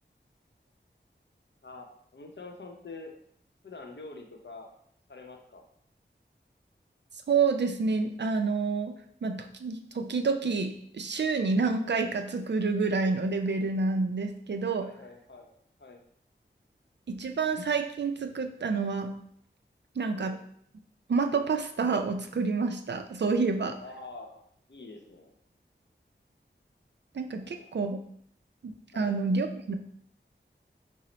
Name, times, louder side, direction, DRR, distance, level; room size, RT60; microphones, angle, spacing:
voice 1, 2.1-3.1 3.6-4.7 5.1-5.7 14.8-15.5 15.8-16.0 20.1-20.4 23.8-25.3 27.3-27.7 28.9-29.2, left 3 dB, 70° left, 2 dB, 0.6 m, -46 dB
voice 2, 7.3-9.0 9.2-14.9 17.1-19.1 20.0-20.3 21.1-23.8 27.1-28.0 28.6-29.7, right 4 dB, 65° right, 6 dB, 0.4 m, -28 dB
4.2 x 2.0 x 3.9 m, 0.68 s
wide cardioid pair, 55°, 19 cm